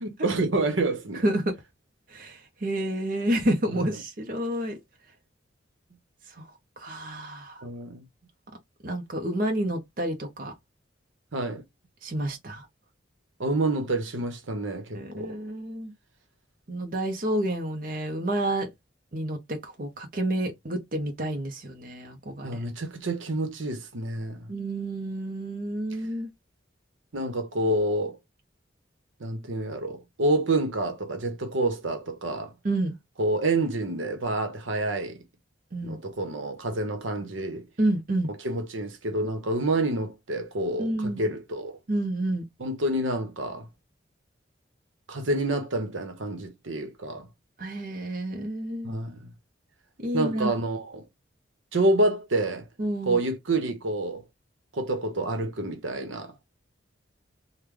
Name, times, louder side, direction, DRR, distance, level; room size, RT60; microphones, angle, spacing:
voice 1, 0.0-1.2 3.7-3.8 7.6-8.0 11.3-11.6 13.4-15.4 22.4-24.5 27.1-28.2 29.2-32.5 33.2-35.2 35.8-37.7 38.4-41.7 42.6-43.7 45.1-47.3 48.8-49.3 50.1-51.0 51.7-52.7 53.0-54.2 54.7-56.3, right 2 dB, 85° right, 0.9 m, -28 dB
voice 2, 1.2-1.5 2.1-4.8 6.4-6.5 6.8-7.6 8.8-10.5 12.0-12.7 14.9-15.9 16.7-18.7 19.1-22.6 24.5-26.3 32.6-32.9 35.7-36.0 37.8-38.3 40.8-41.2 41.9-42.5 47.6-49.0 50.0-50.5 52.8-53.2, right 1 dB, 45° right, 0.7 m, -29 dB
3.2 x 2.2 x 3.6 m
head